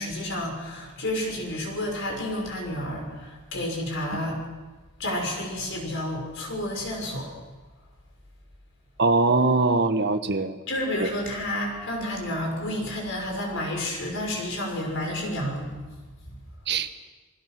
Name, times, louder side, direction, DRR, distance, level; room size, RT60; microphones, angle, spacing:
voice 1, 0.0-4.4 5.0-7.3 10.7-15.7, left 1 dB, 60° left, 2 dB, 5.9 m, -30 dB
voice 2, 9.0-10.6 11.0-11.1 16.7-16.9, right 3 dB, 50° right, 7 dB, 1.4 m, -22 dB
29.0 x 20.5 x 6.1 m, 1.3 s
head